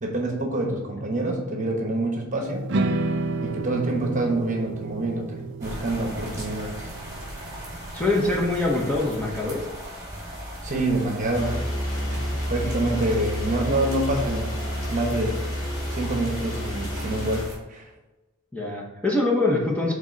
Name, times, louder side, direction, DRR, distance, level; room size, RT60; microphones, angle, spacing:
voice 1, 0.0-2.7 3.4-6.7 10.6-11.6 12.0-12.2 12.5-14.6 14.9-15.4 15.9-17.9, right 1 dB, 35° right, 1 dB, 1.1 m, -26 dB
sound 1, 2.7-9.0, right 3 dB, 50° right, 0.4 m, -31 dB
sound 2, 5.6-17.6, equal, 15° right, 2.0 m, -38 dB
voice 2, 7.9-9.6 18.5-19.9, left 2 dB, 5° left, -3 dB, 1.0 m, -24 dB
sound 3, 11.3-17.4, equal, 70° left, 1.7 m, -30 dB
6.0 x 4.0 x 5.1 m, 1.1 s
head